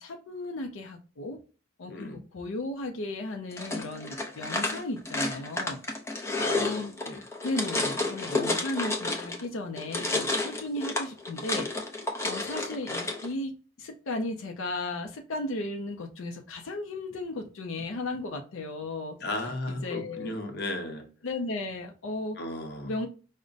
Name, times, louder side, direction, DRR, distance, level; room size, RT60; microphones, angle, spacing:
voice 1, 0.0-1.4 1.8-5.8 6.6-6.9 7.4-11.7 12.2-19.2 19.7-20.4 21.2-22.4 22.8-23.1, left 2 dB, 85° left, 4 dB, 0.5 m, -35 dB
voice 2, 1.9-2.2 6.4-7.2 19.2-21.1 22.4-23.0, left 1 dB, 50° left, 4 dB, 0.7 m, -35 dB
sound 1, 3.5-9.5 9.8-13.3, left 2 dB, 15° left, 0.4 m, -31 dB
5.0 x 2.1 x 2.5 m, 0.36 s
head